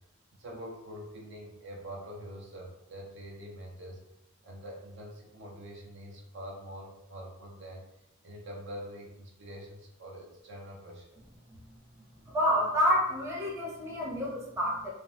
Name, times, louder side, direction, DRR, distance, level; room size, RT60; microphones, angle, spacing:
voice 1, 0.4-4.0 4.4-7.8 8.2-11.2, equal, 55° right, -1 dB, 0.5 m, -45 dB
voice 2, 12.3-14.9, equal, 15° right, -5 dB, 0.7 m, -28 dB
2.6 x 2.0 x 3.2 m, 0.87 s
head